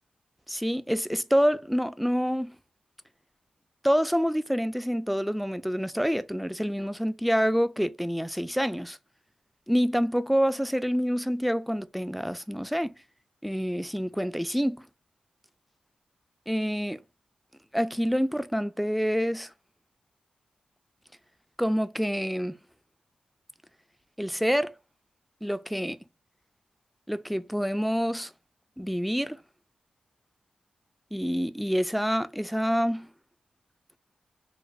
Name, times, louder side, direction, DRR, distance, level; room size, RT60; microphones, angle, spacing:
voice 1, 0.5-2.6 3.8-9.0 9.7-12.9 13.4-14.8 16.5-17.0 17.7-19.5 21.6-22.6 24.2-24.7 25.4-26.0 27.1-28.3 28.8-29.4 31.1-33.1, equal, ahead, 0.3 m, -27 dB
4.7 x 2.0 x 2.4 m
cardioid pair, 70°, 2 cm